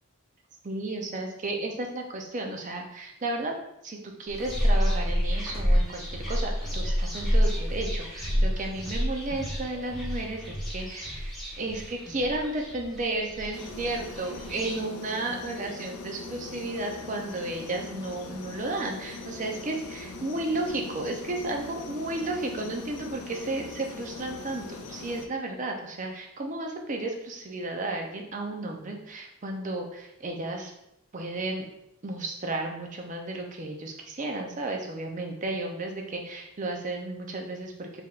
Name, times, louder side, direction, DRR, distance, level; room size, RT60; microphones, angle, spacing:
voice 1, 0.6-3.6 3.8-30.7 31.1-31.7 32.0-38.0, right 2 dB, 35° right, 2 dB, 0.4 m, -33 dB
sound 1, 4.3-14.7, equal, ahead, 0.9 m, -28 dB
sound 2, 13.5-25.3, left 3 dB, 85° left, 0.5 m, -41 dB
4.6 x 3.4 x 2.4 m, 0.82 s
head